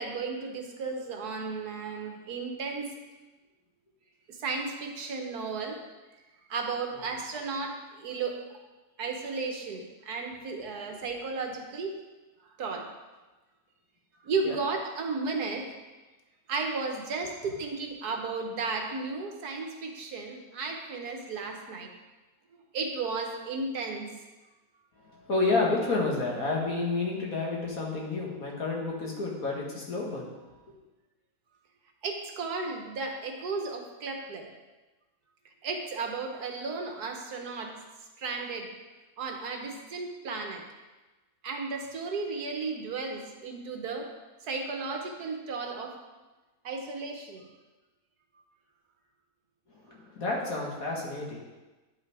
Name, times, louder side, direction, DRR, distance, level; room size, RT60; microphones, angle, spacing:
voice 1, 0.0-3.0 4.3-5.8 6.5-8.4 9.0-12.0 12.6-12.9 14.2-15.7 16.5-21.9 22.5-24.1 32.0-34.5 35.6-37.7 38.2-38.7 39.2-40.6 41.4-44.1 44.5-46.0 46.6-47.5, right 4 dB, 75° right, 3 dB, 1.6 m, -34 dB
voice 2, 25.0-30.6 49.7-51.4, left 3 dB, 60° left, -3 dB, 2.2 m, -30 dB
10.0 x 5.6 x 4.8 m, 1.2 s
omnidirectional pair, 1.7 m